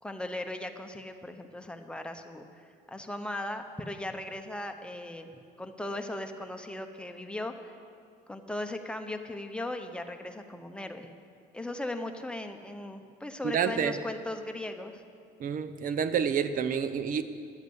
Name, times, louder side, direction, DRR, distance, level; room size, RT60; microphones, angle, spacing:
voice 1, 0.0-2.5 2.9-5.3 5.6-7.8 8.3-11.1 11.5-15.0, left 1 dB, 5° left, 6 dB, 0.9 m, -38 dB
voice 2, 13.4-13.9 15.4-17.2, right 7 dB, 55° right, 12 dB, 0.8 m, -28 dB
12.0 x 8.1 x 8.0 m, 2.3 s
cardioid pair, 110°, 17 cm